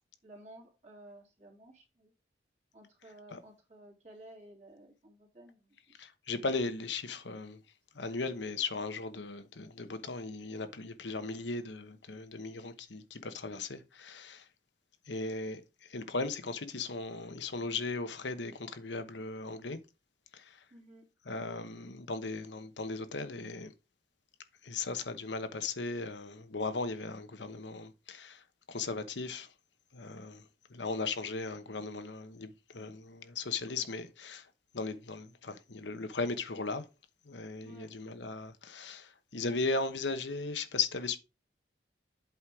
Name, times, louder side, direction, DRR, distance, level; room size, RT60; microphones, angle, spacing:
voice 1, 0.2-2.1 2.7-5.7 20.7-21.1 37.6-37.9, right 1 dB, 40° right, 2.6 m, -54 dB
voice 2, 6.0-7.6 7.9-14.4 15.1-15.6 15.9-19.8 20.3-20.6 21.2-23.7 24.6-28.4 28.7-29.5 29.9-30.4 30.7-34.5 34.7-36.8 37.3-41.2, left 3 dB, 85° left, 1.1 m, -37 dB
8.1 x 4.4 x 4.9 m
head